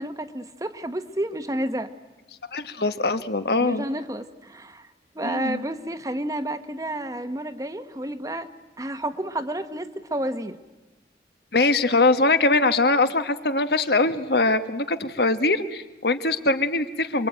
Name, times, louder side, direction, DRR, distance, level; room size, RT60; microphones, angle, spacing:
voice 1, 0.0-1.9 3.6-4.9 5.1-8.5 8.8-10.6, right 1 dB, 20° right, 9 dB, 1.0 m, -30 dB
voice 2, 2.5-3.8 5.2-5.6 11.5-17.3, left 3 dB, 65° left, 10 dB, 1.4 m, -22 dB
27.5 x 23.0 x 9.0 m, 1.1 s
head